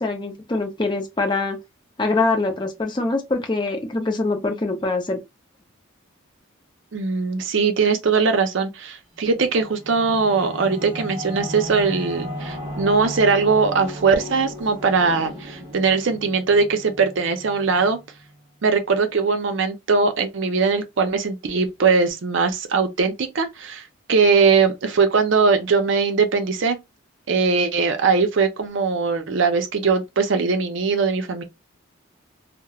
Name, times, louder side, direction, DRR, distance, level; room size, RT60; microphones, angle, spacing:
voice 1, 0.0-1.6 2.0-5.2, left 3 dB, 20° left, 0.4 m, -24 dB
voice 2, 6.9-18.0 18.6-26.8 27.3-31.4, right 4 dB, 65° right, 0.5 m, -20 dB
Singing / Musical instrument, 9.2-18.4, equal, 20° right, 0.9 m, -35 dB
2.9 x 2.0 x 2.3 m
head